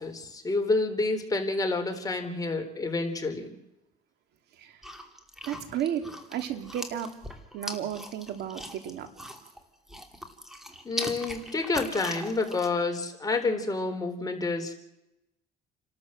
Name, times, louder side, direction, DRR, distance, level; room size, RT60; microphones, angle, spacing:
voice 1, 0.0-3.5 10.8-14.7, left 3 dB, 20° left, 4 dB, 4.0 m, -29 dB
sound 1, 4.8-9.6 9.9-12.7, equal, ahead, 2.9 m, -40 dB
voice 2, 5.4-6.0 6.3-7.1 7.5-9.1, right 10 dB, 75° right, 7 dB, 2.9 m, -33 dB
29.5 x 13.0 x 7.7 m, 0.90 s
cardioid pair, 110°, 17 cm